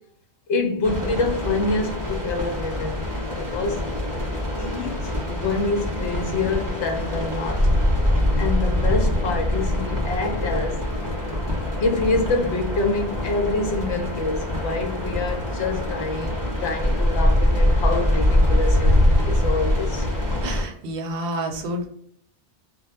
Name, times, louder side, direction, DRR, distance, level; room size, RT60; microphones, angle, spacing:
voice 1, 0.5-3.0 3.4-3.8 4.6-7.7 8.4-10.8 11.8-20.1, left 3 dB, 75° left, 0.9 m, -26 dB
sound 1, 0.8-20.6, left 1 dB, 25° right, 0.4 m, -23 dB
voice 2, 20.4-21.9, right 1 dB, 65° right, 0.7 m, -29 dB
2.1 x 2.0 x 2.9 m
omnidirectional pair, 1.2 m